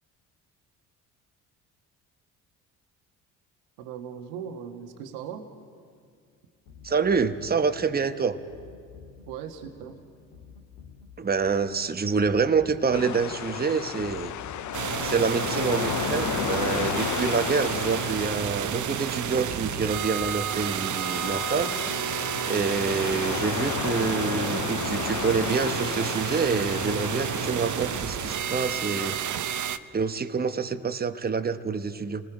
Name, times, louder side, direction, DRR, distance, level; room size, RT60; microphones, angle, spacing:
voice 1, 3.8-5.4 9.3-10.0, right 8 dB, 80° right, 5 dB, 1.6 m, -38 dB
sound 1, 6.7-21.3, left 5 dB, 70° left, 2.1 m, -50 dB
voice 2, 6.8-8.4 11.2-14.3 15.0-21.7 22.5-29.2 29.9-32.2, right 5 dB, 25° right, 8 dB, 1.1 m, -27 dB
sound 2, 12.9-29.2, left 12 dB, 45° left, 0.6 m, -34 dB
sound 3, 14.7-29.8, right 10 dB, 45° right, 0.9 m, -31 dB
29.5 x 19.5 x 5.0 m, 2.3 s
hypercardioid pair, 60°, 40 cm